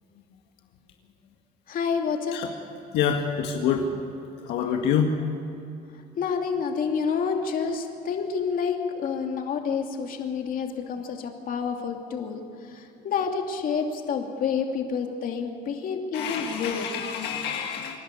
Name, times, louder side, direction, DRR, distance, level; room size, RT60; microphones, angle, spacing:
voice 1, 1.7-2.4 6.2-12.4 12.7-16.9, left 6 dB, 55° left, 3 dB, 2.7 m, -28 dB
voice 2, 2.9-4.0 4.4-5.3 16.1-18.0, left 7 dB, 85° left, 2 dB, 1.8 m, -27 dB
26.5 x 11.5 x 9.6 m, 2.6 s
cardioid pair, 110°, 17 cm